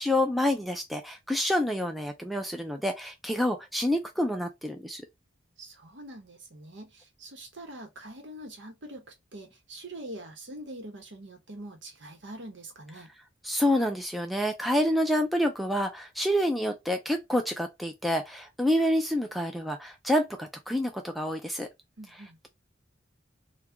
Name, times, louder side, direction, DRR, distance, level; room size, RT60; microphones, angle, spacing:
voice 1, 0.0-5.0 13.4-21.7, left 1 dB, ahead, 0.3 m, -28 dB
voice 2, 5.6-13.1 22.0-22.4, right 1 dB, 65° right, 1.0 m, -44 dB
2.8 x 2.3 x 3.5 m
head